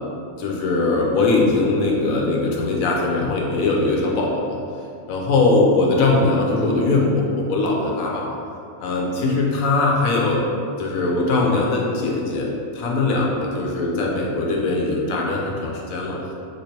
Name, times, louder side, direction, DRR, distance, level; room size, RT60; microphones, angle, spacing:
voice 1, 0.4-4.6 5.1-8.3 8.8-10.4 10.8-16.2, left 3 dB, 85° left, -2 dB, 1.0 m, -21 dB
3.1 x 2.9 x 2.8 m, 2.5 s
omnidirectional pair, 1.4 m